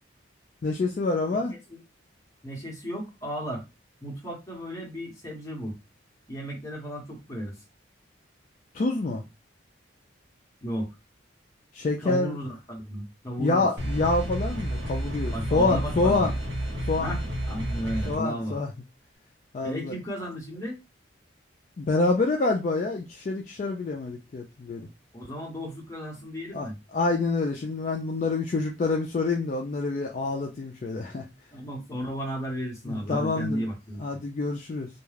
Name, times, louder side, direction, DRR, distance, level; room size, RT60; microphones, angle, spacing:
voice 1, 0.6-1.5 8.7-9.2 11.7-12.4 13.4-16.3 16.9-17.1 18.1-18.7 19.5-19.9 21.8-24.8 26.5-31.2 32.9-33.7 34.0-34.9, left 3 dB, 40° left, 0.3 m, -27 dB
voice 2, 2.4-3.6 4.0-5.7 6.3-7.6 10.6-10.9 12.0-13.7 15.3-16.3 17.0-18.6 19.6-20.8 25.1-26.8 31.5-34.2, equal, 15° left, 0.8 m, -34 dB
sound 1, 13.8-18.2, equal, 60° right, 0.9 m, -30 dB
2.3 x 2.2 x 3.2 m
head